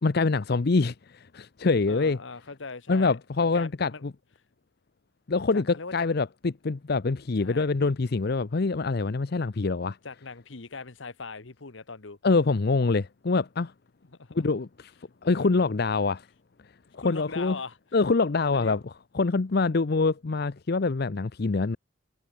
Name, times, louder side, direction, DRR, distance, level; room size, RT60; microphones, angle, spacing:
voice 1, 0.0-2.2 2.9-4.1 5.3-10.0 12.2-13.7 14.3-14.9 15.2-16.3 17.0-17.6 17.9-21.8, left 3 dB, 50° left, 0.6 m, -25 dB
voice 2, 1.9-4.0 5.5-5.9 7.4-7.7 10.0-12.2 14.2-14.4 15.3-15.7 16.9-17.8 18.5-18.8, left 4 dB, 65° left, 1.2 m, -40 dB
head